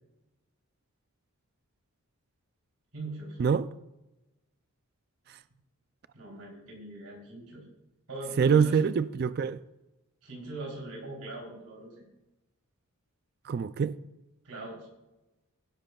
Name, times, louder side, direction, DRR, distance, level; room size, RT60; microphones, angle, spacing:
voice 1, 2.9-3.4 6.1-7.7 8.1-8.8 10.2-12.1 14.4-14.9, right 2 dB, 85° right, 3.5 m, -41 dB
voice 2, 8.4-9.6 13.4-14.0, right 6 dB, 45° right, 0.3 m, -25 dB
17.5 x 10.5 x 2.3 m
head